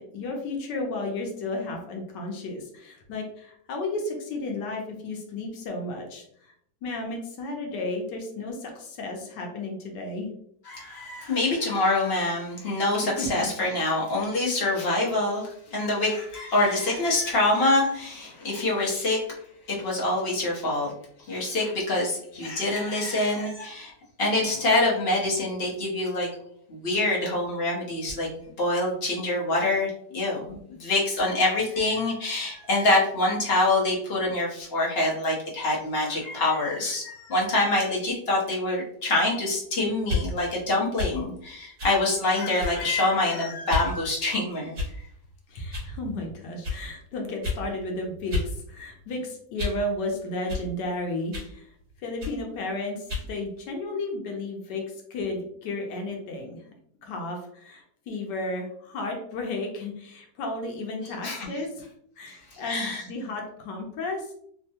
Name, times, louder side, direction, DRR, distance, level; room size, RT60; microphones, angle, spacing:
voice 1, 0.1-6.2 6.8-10.3 13.2-13.5 32.3-32.6 45.5-51.7 52.0-54.8 55.1-56.6 57.0-64.3, left 2 dB, 75° left, 1 dB, 1.3 m, -33 dB
voice 2, 10.7-19.2 19.7-20.9 21.3-23.9 24.2-26.3 26.7-28.3 28.6-44.7 61.2-61.5 62.7-63.0, left 2 dB, 45° left, -4 dB, 0.9 m, -25 dB
sound 1, 40.0-40.3 41.0-41.2 41.8-42.0 42.6-42.9 43.7-43.9 44.7-45.1 45.7-45.9 46.6-46.8 47.4-47.6 48.3-48.5 48.9-49.9 50.5-50.7 51.3-51.5 52.2-52.4 53.1-53.3, left 3 dB, 50° right, 1.6 m, -30 dB
3.5 x 2.2 x 2.7 m, 0.68 s
omnidirectional pair, 1.9 m